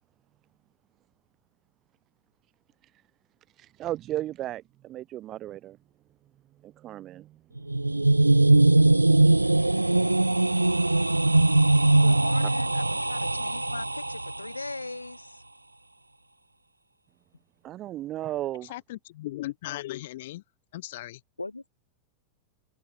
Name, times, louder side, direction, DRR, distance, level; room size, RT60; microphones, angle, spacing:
voice 1, 3.5-5.8 6.6-7.4 7.7-9.0 17.6-18.7, right 13 dB, 35° right, 6.0 m, -36 dB
sound 1, 7.6-14.5, right 2 dB, 85° right, 1.3 m, -21 dB
voice 2, 12.0-15.4 21.4-21.7, left 2 dB, 80° left, 5.9 m, -39 dB
voice 3, 18.7-20.4 20.7-21.2, left 16 dB, 55° left, 2.3 m, -37 dB
figure-of-eight pair, 90°, 0 cm